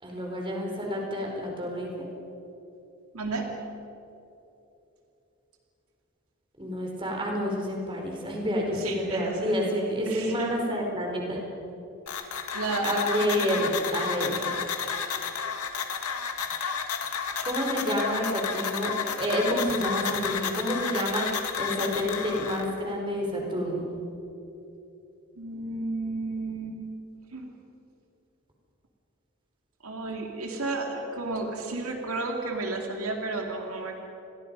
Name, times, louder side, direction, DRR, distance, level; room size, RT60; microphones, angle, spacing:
voice 1, 0.0-1.9 6.6-11.4 12.8-14.4 17.4-23.9, equal, 20° right, 0 dB, 4.4 m, -29 dB
voice 2, 3.1-3.5 8.8-9.6 10.0-10.6 12.5-13.7 13.9-14.6 25.4-26.8 27.3-27.5 29.8-34.0, right 2 dB, 75° right, 2 dB, 2.4 m, -33 dB
sound 1, 12.1-22.7, left 6 dB, 90° left, 2.1 m, -32 dB
29.5 x 22.0 x 5.4 m, 2.9 s
head